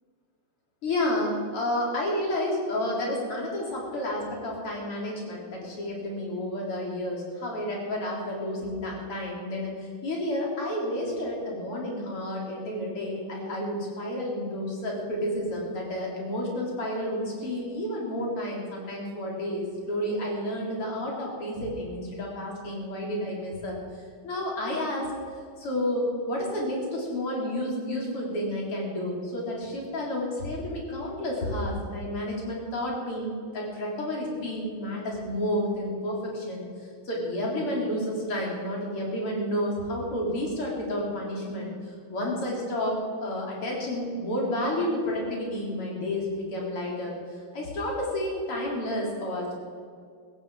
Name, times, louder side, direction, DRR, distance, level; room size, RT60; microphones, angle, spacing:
voice 1, 0.8-25.1 25.6-49.6, left 1 dB, 85° left, -3 dB, 4.6 m, -31 dB
17.0 x 15.0 x 4.9 m, 2.1 s
omnidirectional pair, 2.4 m